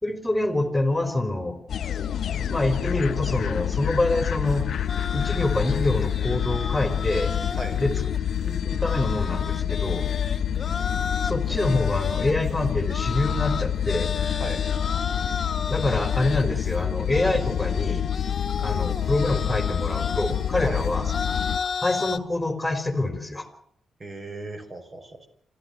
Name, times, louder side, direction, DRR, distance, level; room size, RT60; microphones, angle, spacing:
voice 1, 0.0-1.6 2.5-4.6 5.1-7.3 7.8-7.9 8.4-10.0 11.2-14.1 15.7-18.0 18.6-21.1 21.8-23.5, left 2 dB, 10° left, 6 dB, 4.0 m, -26 dB
sound 1, 1.7-21.6, left 9 dB, 65° left, 0.9 m, -27 dB
sound 2, 4.5-22.2, left 5 dB, 50° left, 1.5 m, -34 dB
voice 2, 24.0-25.3, right 2 dB, 35° right, 7 dB, 5.4 m, -36 dB
27.0 x 13.5 x 8.0 m, 0.69 s
cardioid pair, 80°, 0 cm